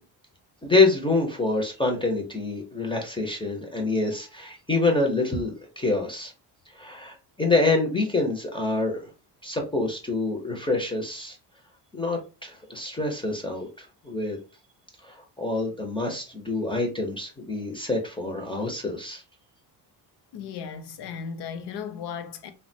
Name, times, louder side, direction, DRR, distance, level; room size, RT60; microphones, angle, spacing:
voice 1, 0.6-6.3 6.7-9.1 9.4-11.4 11.9-14.4 15.0-19.2, left 3 dB, 15° left, 0.4 m, -26 dB
voice 2, 20.3-22.5, left 7 dB, 70° left, 0.6 m, -36 dB
3.5 x 2.1 x 2.5 m
cardioid pair, 150°, 42 cm